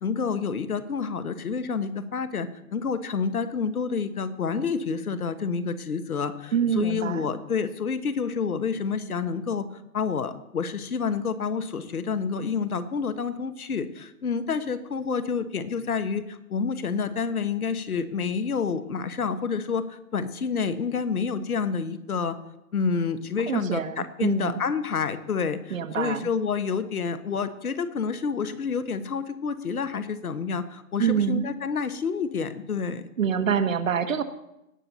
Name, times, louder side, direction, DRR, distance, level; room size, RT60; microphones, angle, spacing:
voice 1, 0.0-9.7 9.9-22.4 22.7-33.1, left 5 dB, 75° left, 11 dB, 1.4 m, -28 dB
voice 2, 6.5-7.3 23.5-24.6 25.7-26.3 31.0-31.5 33.2-34.2, right 7 dB, 60° right, 9 dB, 1.3 m, -26 dB
18.0 x 6.9 x 4.1 m, 0.86 s
hypercardioid pair, 145°, 45 cm